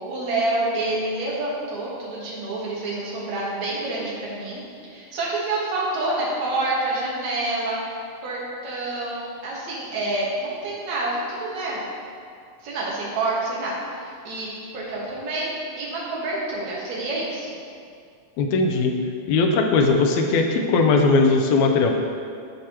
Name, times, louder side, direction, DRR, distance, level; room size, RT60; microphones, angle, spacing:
voice 1, 0.1-7.8 8.2-11.8 12.6-15.5 15.8-17.5, right 2 dB, 60° right, -6 dB, 2.6 m, -28 dB
voice 2, 18.4-18.9 19.3-21.9, left 3 dB, 80° left, 3 dB, 1.7 m, -19 dB
13.0 x 4.7 x 2.9 m, 2.3 s
omnidirectional pair, 4.0 m